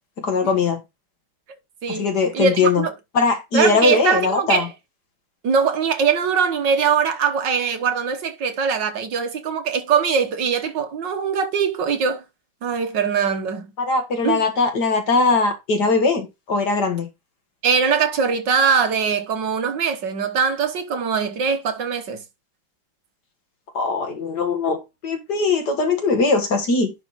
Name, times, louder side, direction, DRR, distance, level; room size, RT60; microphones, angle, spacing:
voice 1, 0.2-0.8 1.9-2.9 3.1-4.7 13.8-17.1 23.7-26.9, left 4 dB, 55° left, 2.1 m, -20 dB
voice 2, 2.3-2.9 3.5-4.7 5.4-12.2 12.6-13.7 14.2-14.4 17.6-22.2, right 6 dB, 65° right, 1.8 m, -21 dB
10.5 x 4.2 x 4.1 m
omnidirectional pair, 2.2 m